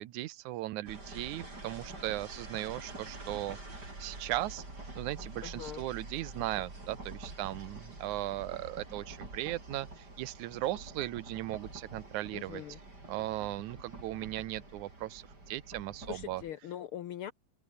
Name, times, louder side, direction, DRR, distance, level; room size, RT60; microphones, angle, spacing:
voice 1, 0.0-4.6 5.0-12.6 13.1-16.4, right 16 dB, 80° right, 2.3 m, -37 dB
sound 1, 0.9-16.5, right 2 dB, 30° right, 7.5 m, -47 dB
voice 2, 5.4-5.8 12.3-12.8 16.1-17.3, left 11 dB, 75° left, 1.3 m, -41 dB
open air
omnidirectional pair, 3.4 m